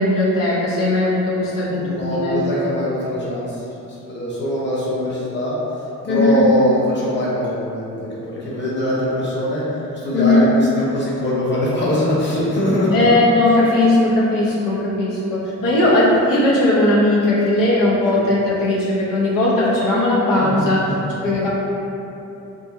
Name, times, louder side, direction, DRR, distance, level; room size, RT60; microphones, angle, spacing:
voice 1, 0.0-2.4 6.1-6.4 10.1-10.5 12.9-20.8 21.2-21.5, left 2 dB, 85° left, -7 dB, 0.6 m, -18 dB
voice 2, 1.6-5.6 6.0-9.6 9.9-13.0 15.6-15.7 18.1-18.2 20.4-21.1, left 1 dB, 35° left, -7 dB, 0.9 m, -22 dB
2.6 x 2.6 x 2.4 m, 2.9 s
cardioid pair, 65°, 33 cm